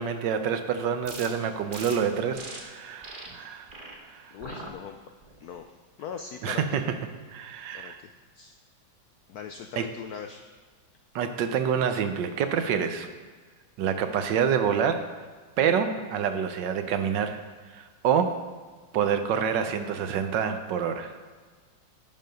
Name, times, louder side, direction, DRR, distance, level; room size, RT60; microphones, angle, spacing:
voice 1, 0.0-3.7 4.1-4.3 6.4-6.8 7.3-8.0 9.8-9.9 11.1-13.1 13.8-15.0 15.6-17.4 17.7-18.3 18.9-21.2, right 7 dB, 70° right, 8 dB, 1.3 m, -27 dB
sound 1, 1.0-1.3 1.7-1.9 2.3-2.6 3.0-3.3 3.7-3.9 4.4-4.7 5.2-5.6, right 3 dB, 35° right, 1.0 m, -41 dB
voice 2, 4.3-5.0 5.4-6.6 7.7-8.6 9.3-10.4, left 7 dB, 80° left, 6 dB, 0.8 m, -41 dB
11.0 x 5.5 x 5.1 m, 1.4 s
omnidirectional pair, 2.2 m